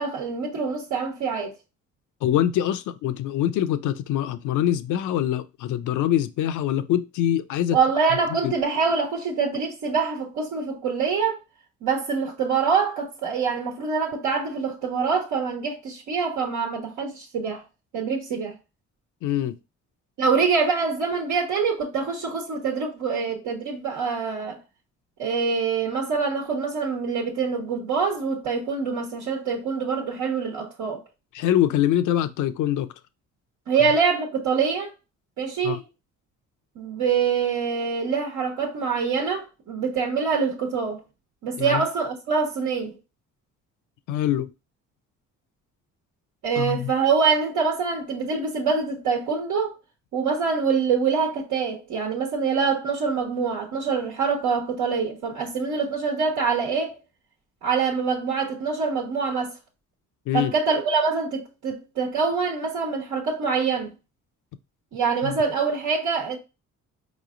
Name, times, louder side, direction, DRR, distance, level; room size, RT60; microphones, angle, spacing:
voice 1, 0.0-1.5 7.7-11.4 11.8-17.6 17.9-18.5 20.2-24.6 25.2-31.0 33.7-34.9 35.4-35.8 36.7-41.0 41.4-43.0 46.4-49.7 50.1-56.9 57.6-59.5 60.3-63.9 64.9-66.4, right 5 dB, 80° right, 1.3 m, -25 dB
voice 2, 2.2-7.8 8.4-8.5 19.2-19.6 31.3-32.9 35.6-35.8 41.6-41.9 44.1-44.5 46.6-46.9 60.3-60.5 65.2-65.4, left 11 dB, 80° left, 0.6 m, -24 dB
4.7 x 3.0 x 2.5 m
cardioid pair, 90°, 30 cm